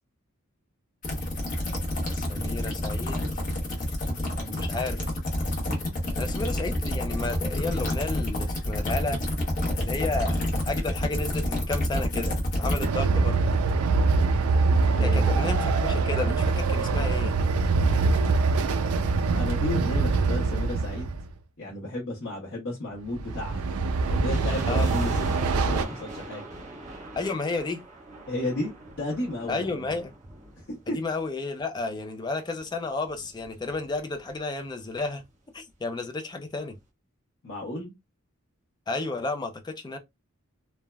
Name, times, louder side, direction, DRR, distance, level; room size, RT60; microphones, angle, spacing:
sound 1, 1.0-12.9, left 1 dB, 40° left, 0.9 m, -28 dB
voice 1, 2.1-3.3 4.4-5.1 6.2-9.2 9.7-10.4 10.7-13.5 15.0-17.3 24.7-24.9 27.2-27.8 29.5-30.1 30.9-35.2 35.5-36.8 38.9-40.0, left 3 dB, 20° left, 0.3 m, -32 dB
Train, 12.8-21.3 23.1-25.8, right 3 dB, 85° right, 0.4 m, -24 dB
voice 2, 14.8-15.4 19.3-21.1 21.6-23.6 24.1-26.5 28.3-29.9 30.6-31.0 37.4-37.9, left 1 dB, 65° left, 0.8 m, -33 dB
sound 2, 24.3-31.5 31.8-31.9 32.6-34.4 34.6-34.7 35.0-35.3 35.7-35.8, right 2 dB, 35° right, 0.9 m, -43 dB
3.3 x 2.1 x 2.2 m
head